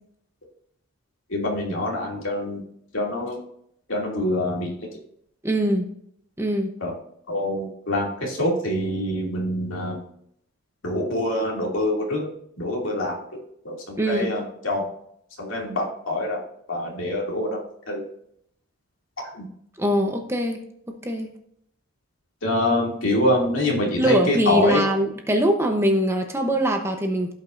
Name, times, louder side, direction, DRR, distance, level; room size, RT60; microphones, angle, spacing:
voice 1, 1.3-2.6 2.9-3.4 3.9-4.7 6.8-6.9 7.3-10.0 10.8-12.3 12.6-13.2 13.6-14.8 15.4-16.4 16.7-18.0 19.3-19.5 22.4-24.8, left 1 dB, 65° left, -2 dB, 2.6 m, -25 dB
voice 2, 5.4-5.9 6.4-6.7 14.0-14.3 19.8-21.3 24.0-27.3, equal, 10° right, 3 dB, 0.9 m, -23 dB
16.0 x 5.3 x 2.6 m, 0.71 s
head